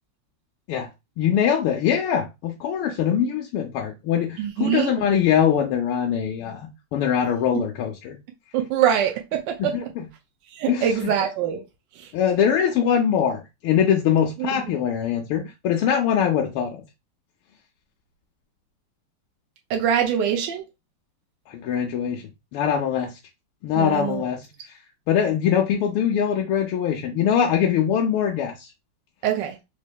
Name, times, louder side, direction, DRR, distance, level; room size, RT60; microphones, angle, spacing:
voice 1, 1.2-8.2 9.6-10.1 10.7-11.1 12.1-16.8 21.5-22.2 22.5-23.1 23.6-24.5 25.1-28.5, left 8 dB, 85° left, 1.5 m, -22 dB
voice 2, 4.4-4.9 8.5-9.9 10.5-11.6 12.0-12.1 14.4-14.8 19.7-20.7 23.7-24.2 29.2-29.6, right 9 dB, 75° right, 1.1 m, -24 dB
4.2 x 2.9 x 2.2 m
omnidirectional pair, 2.4 m